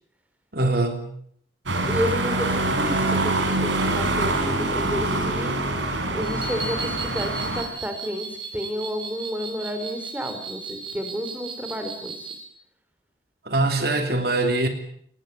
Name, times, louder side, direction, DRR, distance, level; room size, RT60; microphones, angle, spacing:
voice 1, 0.5-1.1 13.4-14.7, right 2 dB, 55° right, 6 dB, 3.2 m, -22 dB
sound 1, 1.7-7.6, right 2 dB, 90° right, 5.5 m, -25 dB
voice 2, 1.9-5.6 6.1-12.3, equal, 10° right, 6 dB, 4.2 m, -31 dB
sound 2, 6.2-12.4, right 4 dB, 25° right, 4.2 m, -36 dB
21.0 x 20.0 x 9.6 m, 0.66 s
head